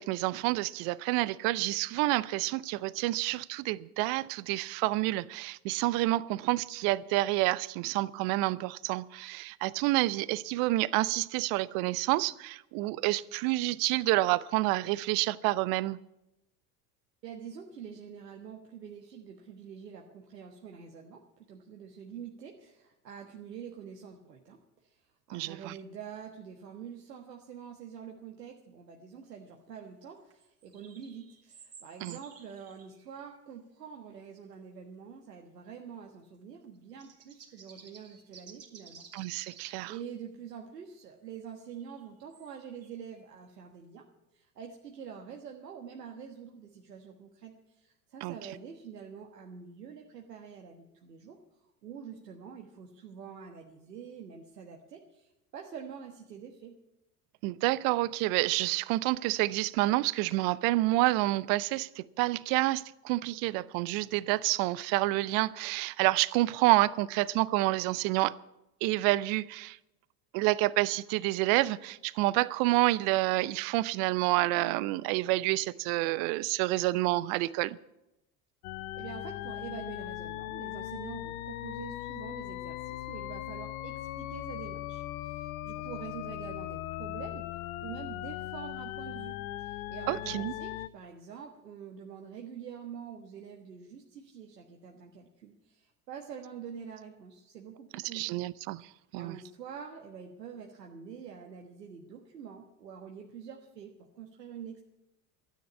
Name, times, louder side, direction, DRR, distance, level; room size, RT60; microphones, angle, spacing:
voice 1, 0.0-16.0 25.3-25.7 32.0-32.2 39.1-39.9 48.2-48.3 57.4-68.4 68.8-69.8 70.3-77.8 90.1-90.5 98.1-98.8 99.1-99.4, right 19 dB, 45° right, 0.6 m, -28 dB
voice 2, 17.2-21.2 21.5-25.0 25.3-39.4 39.9-44.0 44.3-51.4 51.8-56.7 78.9-87.5 87.8-98.4 99.1-104.8, right 7 dB, 80° right, 1.4 m, -46 dB
sound 1, 30.2-33.4 34.5-34.6 36.6-39.8 41.5-43.4, right 6 dB, 30° right, 2.7 m, -54 dB
sound 2, 78.6-90.9, left 14 dB, 60° left, 0.8 m, -39 dB
13.0 x 9.4 x 8.5 m
figure-of-eight pair, 75°, 48 cm